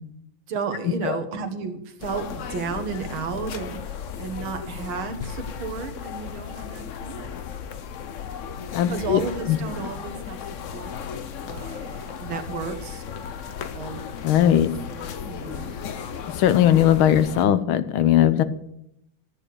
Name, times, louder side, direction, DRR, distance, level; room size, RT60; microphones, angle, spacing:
voice 1, 0.5-7.3 8.9-10.9 11.4-13.1 13.7-14.0 14.4-14.7 15.2-15.8, right 5 dB, 90° right, 6 dB, 2.2 m, -33 dB
sound 1, 2.0-17.5, left 7 dB, 60° left, 0.8 m, -35 dB
voice 2, 8.7-9.2 9.5-9.6 14.2-14.7 16.3-18.4, left 11 dB, 85° left, 13 dB, 1.7 m, -19 dB
12.5 x 9.9 x 6.8 m, 0.81 s
omnidirectional pair, 2.2 m